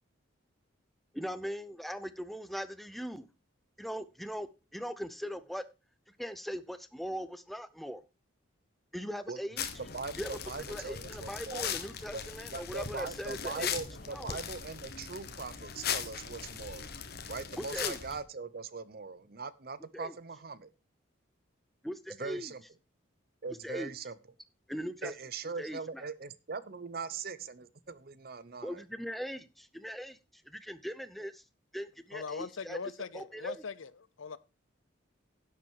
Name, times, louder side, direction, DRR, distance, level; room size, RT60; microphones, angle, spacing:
voice 1, 1.1-3.3 3.8-4.5 4.7-5.6 6.2-8.0 8.9-9.7 10.2-10.3 10.7-13.8 14.1-14.4 17.6-18.0 19.9-20.1 21.8-22.5 23.6-23.9 24.7-25.1 25.6-26.1 28.6-31.4 31.7-32.8 33.1-33.6, equal, ahead, 0.7 m, -40 dB
sound 1, 9.6-18.2, left 7 dB, 50° left, 1.3 m, -39 dB
voice 2, 9.9-11.7 12.1-12.2 12.5-16.9 17.3-20.6 22.2-22.6 23.4-24.1 25.0-28.8, right 4 dB, 45° right, 0.7 m, -41 dB
voice 3, 32.1-33.9 34.2-34.4, left 5 dB, 75° left, 0.7 m, -40 dB
11.0 x 7.6 x 4.6 m
head